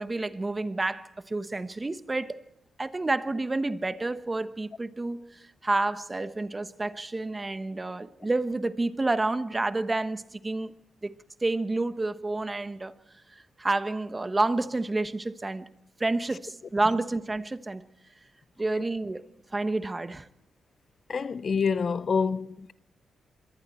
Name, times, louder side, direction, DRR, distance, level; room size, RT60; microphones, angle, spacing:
voice 1, 0.0-2.4 2.8-10.7 11.0-11.1 11.4-13.0 13.3-15.7 16.0-17.8 18.6-19.2 19.5-20.3, right 2 dB, 20° right, 1.1 m, -29 dB
voice 2, 21.1-22.7, left 5 dB, 50° left, 0.7 m, -27 dB
26.5 x 22.5 x 4.4 m
cardioid pair, 85°, 0 cm